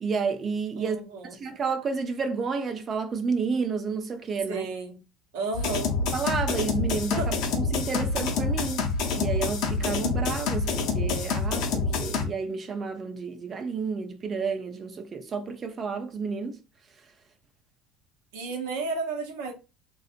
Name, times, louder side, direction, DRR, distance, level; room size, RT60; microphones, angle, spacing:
voice 1, 0.0-1.0 1.3-4.7 6.1-8.8 9.1-16.6, right 5 dB, 40° right, 0.5 m, -30 dB
voice 2, 0.8-1.4 4.5-5.0 5.3-5.9 7.2-7.3 7.8-7.9 18.3-19.5, right 4 dB, 80° right, 0.8 m, -32 dB
sound 1, 5.5-12.2, left 4 dB, 65° left, 0.7 m, -27 dB
2.7 x 2.3 x 2.5 m
supercardioid pair, 85°, 0 cm